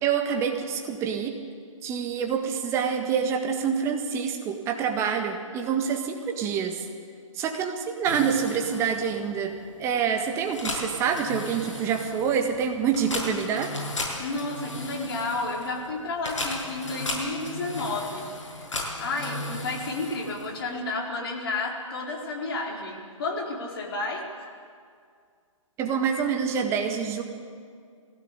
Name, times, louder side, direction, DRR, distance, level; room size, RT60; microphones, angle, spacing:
voice 1, 0.0-1.4 1.8-6.8 7.3-9.5 9.8-13.7 25.8-27.2, right 7 dB, 15° right, 4 dB, 1.7 m, -26 dB
sound 1, 8.0-20.8, left 2 dB, 65° left, 7.0 m, -36 dB
voice 2, 14.2-18.3 18.5-18.7 19.0-24.2, left 3 dB, 45° left, -1 dB, 4.4 m, -31 dB
20.5 x 16.5 x 8.4 m, 2.2 s
hypercardioid pair, 145°, 17 cm